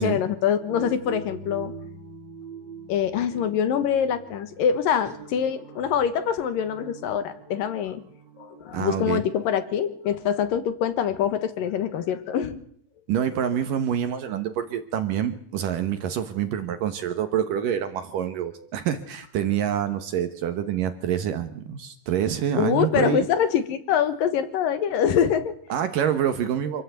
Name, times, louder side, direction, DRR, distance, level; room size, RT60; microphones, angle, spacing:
voice 1, 0.0-1.7 2.9-8.0 8.4-12.6 22.6-25.5, left 8 dB, 65° left, 11 dB, 2.6 m, -24 dB
sound 1, 0.6-10.5, right 4 dB, 30° right, 3.1 m, -44 dB
voice 2, 8.7-9.2 13.1-23.3 25.7-26.8, right 9 dB, 65° right, 9 dB, 2.3 m, -26 dB
26.5 x 15.5 x 8.2 m, 0.65 s
omnidirectional pair, 5.0 m